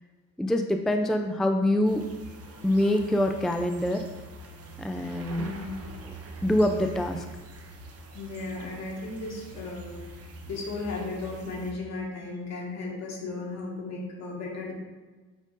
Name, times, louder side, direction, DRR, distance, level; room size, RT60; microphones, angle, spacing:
voice 1, 0.4-2.0 2.6-4.0 4.8-5.5 6.4-7.3, left 1 dB, ahead, 5 dB, 0.3 m, -25 dB
sound 1, 1.8-11.7, right 2 dB, 55° right, 1.0 m, -44 dB
voice 2, 5.4-5.8 8.1-9.9 10.5-14.7, left 3 dB, 60° left, -2 dB, 1.9 m, -35 dB
7.4 x 5.2 x 2.6 m, 1.3 s
cardioid pair, 90°, 30 cm